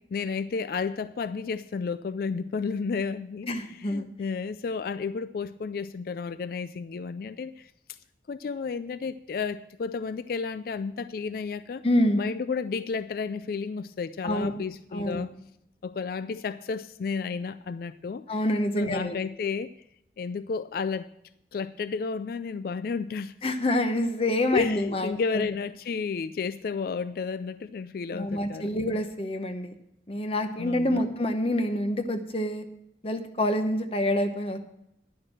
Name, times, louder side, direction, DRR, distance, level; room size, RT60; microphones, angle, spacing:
voice 1, 0.1-7.7 8.3-11.8 12.2-15.3 15.8-18.2 18.8-19.7 20.2-21.1 21.5-23.3 24.5-28.8 30.6-31.1, left 5 dB, 50° left, 0.3 m, -32 dB
voice 2, 3.5-4.1 11.8-12.2 14.2-14.5 14.9-15.3 18.3-19.2 23.4-25.4 28.1-29.7 30.1-32.6 33.0-34.6, left 1 dB, 30° left, 0.8 m, -27 dB
10.5 x 6.6 x 7.5 m
head